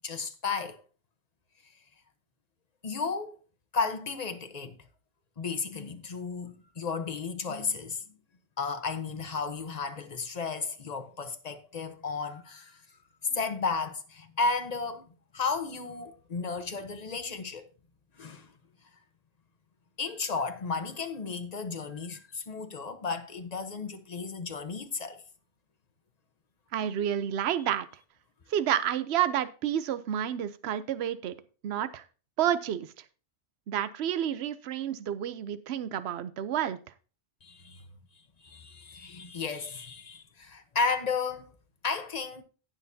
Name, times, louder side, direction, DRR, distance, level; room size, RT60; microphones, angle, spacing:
voice 1, 0.0-0.8 2.8-3.4 3.7-4.8 5.4-8.0 8.6-12.8 13.2-15.1 15.3-17.7 18.2-18.5 20.0-25.2 37.4-37.9 38.4-41.5 41.8-42.4, left 4 dB, 40° left, 1.0 m, -33 dB
voice 2, 26.7-27.9 28.5-31.4 31.6-32.0 32.4-32.9 33.7-36.8, right 10 dB, 70° right, 0.9 m, -30 dB
17.0 x 6.3 x 2.7 m
omnidirectional pair, 1.1 m